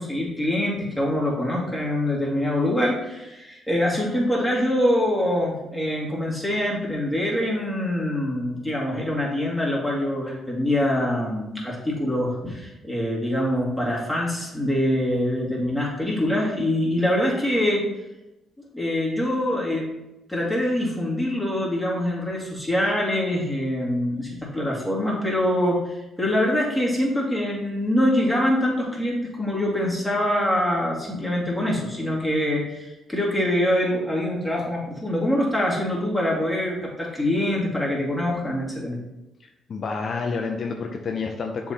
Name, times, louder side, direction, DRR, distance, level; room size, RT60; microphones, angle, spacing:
voice 1, 0.0-17.8 18.7-19.9 20.3-39.0, left 1 dB, ahead, -5 dB, 2.3 m, -24 dB
voice 2, 39.4-41.7, left 4 dB, 50° left, 3 dB, 0.6 m, -29 dB
6.9 x 3.7 x 4.3 m, 0.97 s
cardioid pair, 90°, 0 cm